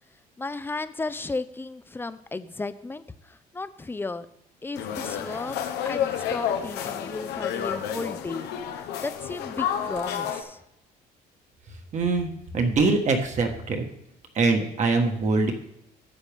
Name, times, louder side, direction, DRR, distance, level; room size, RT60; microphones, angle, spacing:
voice 1, 0.4-4.3 4.6-10.6, left 3 dB, 15° left, 13 dB, 0.5 m, -35 dB
sound 1, 4.8-10.4, left 9 dB, 85° left, 1.0 m, -30 dB
voice 2, 11.9-13.9 14.3-15.5, right 3 dB, 45° right, 4 dB, 1.6 m, -23 dB
12.5 x 7.6 x 3.6 m, 0.78 s
cardioid pair, 110°, 17 cm